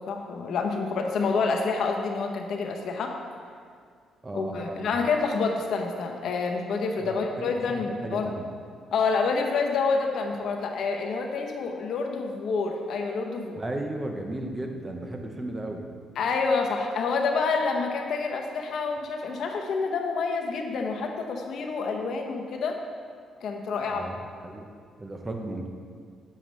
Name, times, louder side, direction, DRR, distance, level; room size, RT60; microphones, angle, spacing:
voice 1, 0.1-3.1 4.3-8.3 8.9-13.6 16.2-22.8 23.4-24.0, left 4 dB, 70° left, 3 dB, 0.8 m, -28 dB
voice 2, 4.2-4.9 7.0-8.5 13.5-15.9 23.9-24.2 24.4-24.7 25.0-25.7, right 1 dB, 20° right, 3 dB, 0.9 m, -35 dB
7.5 x 6.7 x 3.3 m, 2.2 s
cardioid pair, 90°, 0 cm